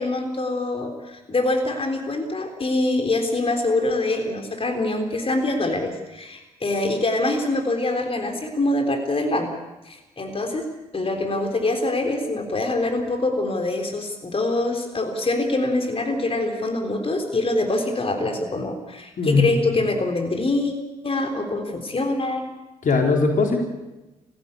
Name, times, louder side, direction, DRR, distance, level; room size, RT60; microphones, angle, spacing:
voice 1, 0.0-9.5 9.9-10.7 10.9-20.7 21.0-22.5, left 2 dB, 35° left, 4 dB, 3.8 m, -24 dB
voice 2, 19.2-19.7 22.8-23.6, left 4 dB, 50° left, 2 dB, 4.0 m, -20 dB
23.5 x 16.0 x 8.5 m, 1.0 s
hypercardioid pair, 45°, 17 cm